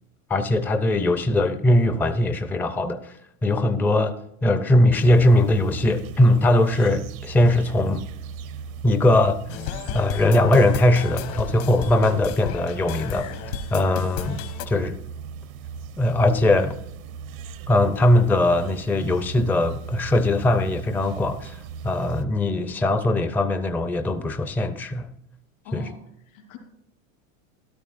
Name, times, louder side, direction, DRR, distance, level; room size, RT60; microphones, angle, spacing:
voice 1, 0.3-8.1 8.8-9.6 9.9-13.3 13.7-15.0 16.0-16.8 17.7-25.1 25.7-25.9, left 1 dB, 5° left, 0.4 m, -20 dB
sound 1, 4.9-22.3, right 6 dB, 80° right, 0.9 m, -38 dB
sound 2, 9.5-14.7, left 9 dB, 60° left, 1.2 m, -33 dB
voice 2, 25.6-26.6, left 3 dB, 75° left, 2.8 m, -41 dB
13.0 x 12.5 x 2.4 m
supercardioid pair, 115°, 40 cm